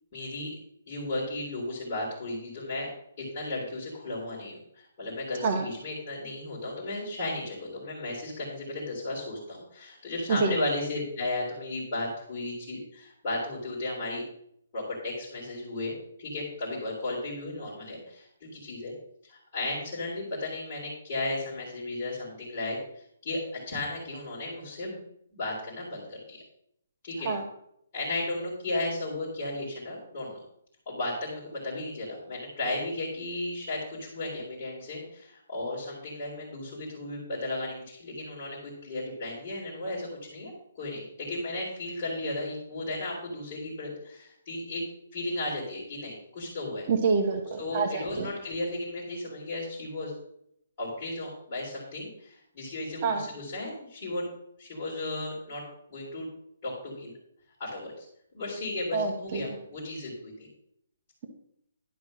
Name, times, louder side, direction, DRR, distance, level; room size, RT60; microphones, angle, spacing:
voice 1, 0.1-0.5 0.9-2.9 3.2-14.2 14.7-18.9 19.2-25.0 25.3-26.4 27.0-27.3 27.9-30.4 30.9-44.8 45.1-46.9 47.6-50.1 50.8-54.3 54.6-55.6 55.9-56.3 56.6-57.1 57.6-58.1 58.3-60.1 60.4-60.5, left 2 dB, 20° left, -10 dB, 3.7 m, -35 dB
voice 2, 46.9-48.3 53.0-53.2 58.9-59.4, right 4 dB, 25° right, 2 dB, 1.0 m, -27 dB
11.5 x 5.2 x 6.2 m, 0.70 s
hypercardioid pair, 180°, 0 cm